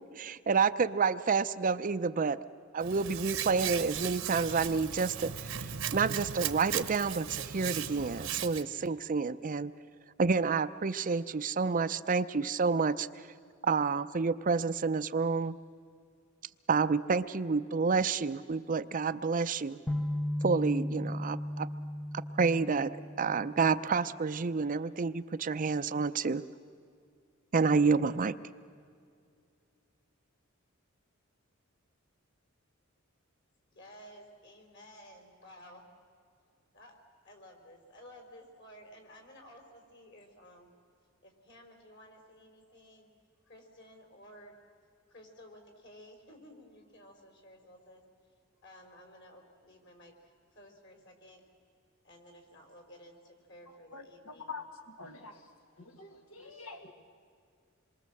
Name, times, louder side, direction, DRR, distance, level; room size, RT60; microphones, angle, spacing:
voice 1, 0.1-2.4 2.7-9.7 10.2-13.3 13.6-15.6 16.7-19.8 20.4-21.7 22.1-26.4 27.5-28.4, right 4 dB, 40° right, 12 dB, 0.5 m, -29 dB
Hands, 2.8-8.6, right 9 dB, 70° right, 1.1 m, -37 dB
sound 1, 19.9-23.9, left 1 dB, 10° left, 0.7 m, -36 dB
voice 2, 33.7-35.9 36.7-37.0 37.2-40.8 41.2-43.1 43.5-44.6 45.1-48.0 48.6-51.4 52.0-54.6, equal, 55° left, 4 dB, 4.2 m, -54 dB
voice 3, 53.9-55.4 55.8-56.9, left 4 dB, 80° left, 4 dB, 1.8 m, -46 dB
27.0 x 23.0 x 7.7 m, 2.3 s
head